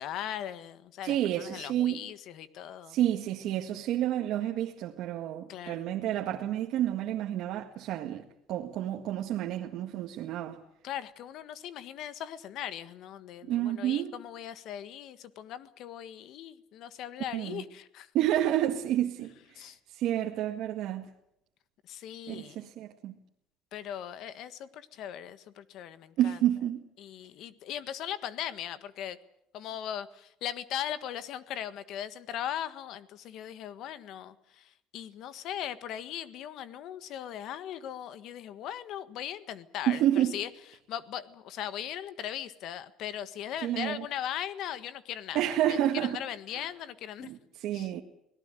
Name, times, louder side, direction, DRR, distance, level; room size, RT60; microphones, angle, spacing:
voice 1, 0.0-3.0 5.5-5.9 10.8-18.1 19.5-19.8 21.8-22.7 23.7-26.4 27.0-29.2 29.5-40.5 40.9-47.3 47.7-47.9, left 10 dB, 65° left, 1.6 m, -39 dB
voice 2, 1.0-2.0 2.9-8.2 8.5-10.6 13.5-14.1 17.3-17.6 18.1-21.1 22.3-23.1 26.2-26.8 39.9-40.4 43.6-44.0 45.3-46.2 47.2-48.0, right 12 dB, 65° right, 1.8 m, -29 dB
24.5 x 18.0 x 9.2 m
cardioid pair, 135°, 0 cm